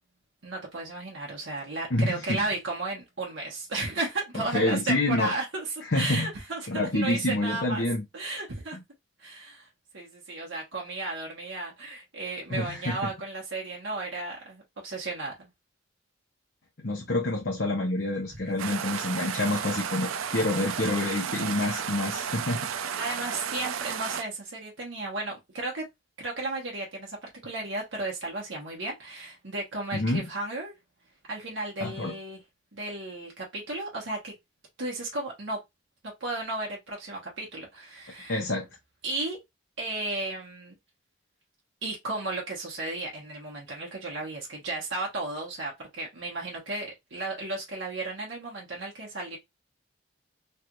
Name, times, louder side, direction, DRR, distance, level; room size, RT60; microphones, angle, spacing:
voice 1, 0.4-7.8 8.1-8.8 9.2-15.5 23.0-25.9 26.2-30.7 31.3-32.4 32.7-34.3 34.8-35.6 36.2-38.4 39.0-39.4 39.8-40.7 41.8-49.4, right 2 dB, 70° right, 1.1 m, -34 dB
voice 2, 1.9-2.4 4.3-5.3 5.9-6.3 6.7-8.0 12.5-13.1 16.8-22.7 29.9-30.3 31.8-32.1 38.3-38.7, left 2 dB, 55° left, 0.8 m, -27 dB
sound 1, 18.6-24.2, right 8 dB, 85° right, 0.4 m, -33 dB
3.2 x 2.5 x 2.9 m
head